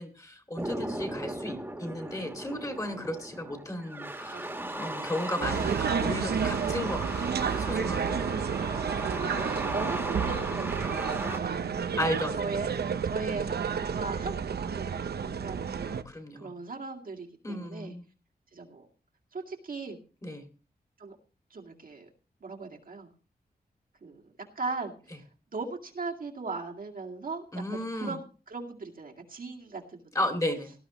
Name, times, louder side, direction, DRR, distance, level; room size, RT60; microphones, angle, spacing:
voice 1, 0.0-8.2 12.0-12.4 15.9-16.5 17.4-18.0 20.2-20.5 27.5-28.2 30.1-30.7, left 1 dB, 20° left, 4 dB, 2.2 m, -34 dB
sound 1, 0.6-11.4, right 1 dB, 15° right, 1.8 m, -37 dB
voice 2, 4.3-5.0 9.1-11.7 12.4-12.7 13.0-15.9 16.3-18.0 18.5-18.9 19.3-20.0 21.0-21.2 21.5-22.1 22.4-23.1 24.0-25.2 25.5-30.3, right 3 dB, 60° right, 0 dB, 2.2 m, -39 dB
sound 2, 5.4-16.0, right 7 dB, 85° right, 0.8 m, -31 dB
18.0 x 12.0 x 3.1 m, 0.35 s
wide cardioid pair, 130°, 16 cm